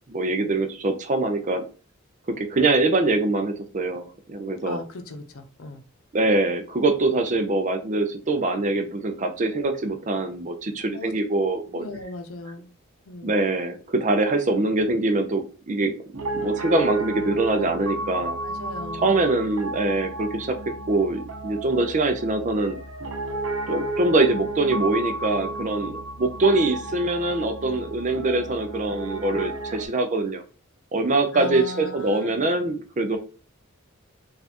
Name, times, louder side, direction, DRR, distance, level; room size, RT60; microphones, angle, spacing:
voice 1, 0.1-1.6 2.4-4.8 6.1-11.8 13.2-16.0 16.3-18.4 19.0-20.6 20.9-22.8 23.7-30.4 30.9-33.2, right 2 dB, 35° right, 6 dB, 0.5 m, -23 dB
voice 2, 4.7-5.8 10.9-11.1 11.7-12.7 13.0-13.4 18.4-19.1 31.3-32.4, left 2 dB, 85° left, 6 dB, 0.7 m, -37 dB
Piano, 16.1-29.9, right 2 dB, 80° right, 0.8 m, -32 dB
4.2 x 2.5 x 2.9 m, 0.37 s
head